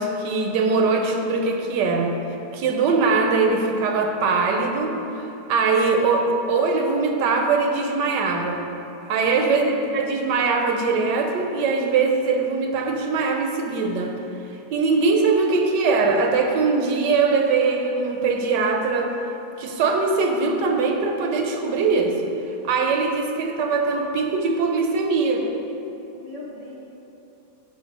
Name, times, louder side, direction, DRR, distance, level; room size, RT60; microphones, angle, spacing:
voice 1, 0.0-2.1 2.5-8.6 9.0-14.1 14.7-19.1 19.6-22.2 22.5-25.4, right 4 dB, 75° right, 3 dB, 1.3 m, -21 dB
voice 2, 9.2-10.1 26.1-26.8, left 1 dB, 60° left, -6 dB, 0.4 m, -40 dB
5.7 x 5.1 x 5.2 m, 3.0 s
omnidirectional pair, 1.9 m